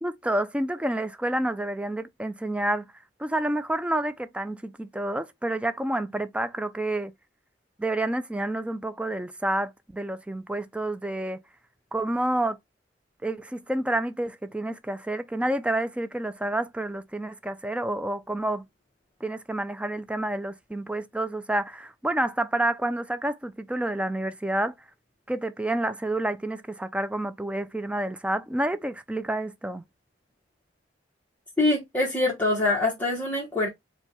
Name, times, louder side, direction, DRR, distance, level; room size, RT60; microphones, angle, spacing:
voice 1, 0.0-2.9 3.2-7.1 7.8-11.4 11.9-12.6 13.2-18.6 19.2-24.7 25.3-29.8, right 1 dB, 5° right, 0.3 m, -29 dB
voice 2, 31.6-33.7, left 2 dB, 10° left, 1.0 m, -24 dB
4.5 x 2.2 x 4.2 m
head